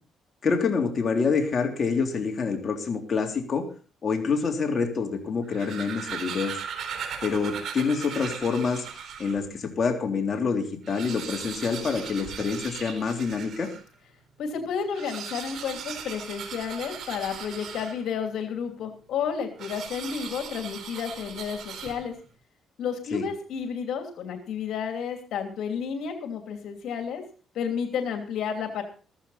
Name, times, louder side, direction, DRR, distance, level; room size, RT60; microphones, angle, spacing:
voice 1, 0.4-3.6 4.0-6.6 7.2-8.8 9.2-13.7 23.1-23.2, left 5 dB, 45° left, 2 dB, 3.4 m, -27 dB
sound 1, 5.3-9.5 10.0-10.1 10.3-10.4 10.7-13.9 14.8-18.3 19.6-22.3, right 7 dB, 70° right, 3.7 m, -38 dB
voice 2, 14.4-22.1 22.8-27.2 27.5-28.8, left 7 dB, 75° left, 4 dB, 2.9 m, -31 dB
15.0 x 14.5 x 4.2 m, 0.38 s
cardioid pair, 90°, 0 cm